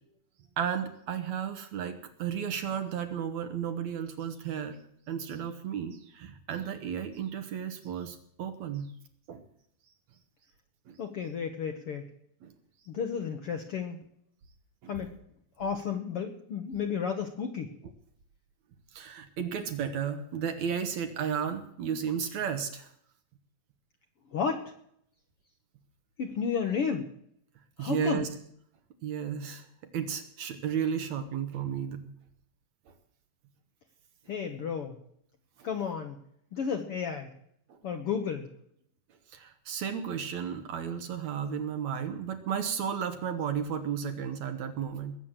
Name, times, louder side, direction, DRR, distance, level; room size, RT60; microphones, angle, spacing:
voice 1, 0.6-4.8 5.1-8.9 9.3-9.4 10.9-11.0 12.4-12.5 14.8-14.9 18.9-22.9 27.8-28.3 29.0-29.7 29.9-32.1 35.6-35.7 37.7-37.8 39.3-45.2, right 8 dB, 65° right, 8 dB, 2.2 m, -33 dB
voice 2, 11.0-12.1 12.9-14.0 14.9-15.1 15.6-17.7 24.3-24.7 26.2-27.1 27.8-28.3 34.3-35.0 35.6-36.2 36.5-37.3 37.8-38.5, left 6 dB, 60° left, 5 dB, 1.5 m, -32 dB
20.5 x 8.4 x 7.4 m, 0.70 s
omnidirectional pair, 3.9 m